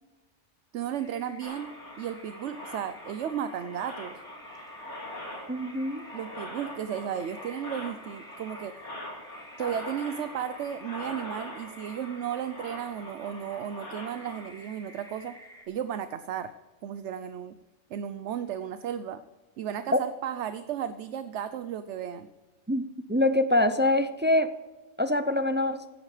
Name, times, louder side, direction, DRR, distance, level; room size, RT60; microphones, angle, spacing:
voice 1, 0.7-4.2 6.1-8.8 9.6-15.4 15.7-16.5 16.8-17.6 17.9-19.2 19.6-22.3, right 9 dB, 80° right, 12 dB, 1.0 m, -34 dB
sound 1, 0.9-15.6, equal, 5° left, 3.5 m, -51 dB
sound 2, 1.4-14.5, left 1 dB, 85° left, 3.3 m, -43 dB
voice 2, 5.5-6.0 19.9-20.0 22.7-24.5 25.0-25.8, left 1 dB, 15° right, 10 dB, 0.4 m, -24 dB
16.0 x 11.5 x 4.9 m, 1.2 s
omnidirectional pair, 1.2 m